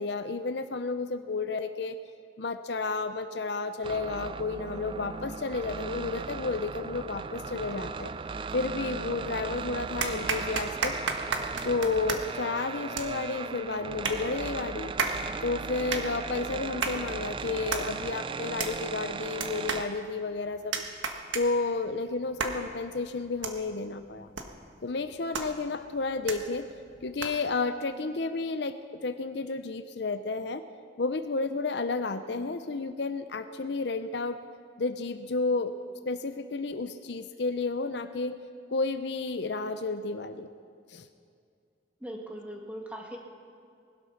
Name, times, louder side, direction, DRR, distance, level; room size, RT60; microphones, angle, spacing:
voice 1, 0.0-2.0 2.4-8.1 8.5-11.0 11.6-14.9 15.4-20.8 21.3-24.3 24.8-26.7 27.0-30.7 31.0-34.4 34.8-35.8 36.1-38.4 38.7-40.5 40.9-41.1, left 3 dB, 60° left, 10 dB, 0.6 m, -31 dB
sound 1, 3.8-19.8, right 4 dB, 25° right, 0.3 m, -37 dB
sound 2, 8.9-9.5 10.0-27.6, right 4 dB, 80° right, 1.5 m, -36 dB
voice 2, 42.0-43.2, right 1 dB, 5° right, 0 dB, 1.9 m, -40 dB
20.0 x 12.0 x 5.8 m, 2.3 s
head